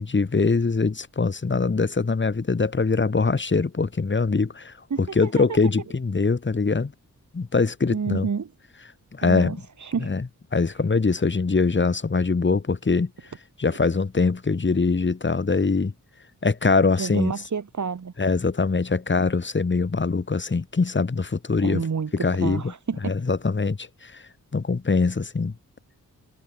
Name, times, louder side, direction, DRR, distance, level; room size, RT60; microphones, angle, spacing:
voice 1, 0.0-6.9 7.3-8.3 9.1-9.6 10.0-10.3 10.5-13.1 13.6-15.9 16.4-17.3 18.2-21.8 22.2-22.7 23.0-24.2 24.5-25.5, left 4 dB, 35° left, 3.4 m, -23 dB
voice 2, 4.9-5.6 7.9-8.5 9.2-10.1 17.0-18.1 21.6-23.1, right 6 dB, 60° right, 8.0 m, -29 dB
wide cardioid pair, 100°, 32 cm